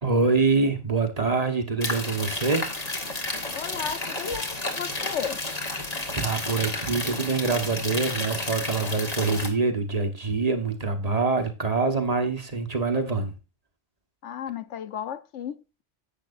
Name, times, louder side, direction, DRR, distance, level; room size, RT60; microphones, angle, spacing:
voice 1, 0.0-2.7 6.1-13.3, right 4 dB, 35° right, 1.4 m, -25 dB
sound 1, 1.8-9.5, left 2 dB, 35° left, 1.7 m, -31 dB
voice 2, 3.5-5.4 14.2-15.8, left 8 dB, 80° left, 1.1 m, -34 dB
10.5 x 8.3 x 2.6 m
omnidirectional pair, 1.2 m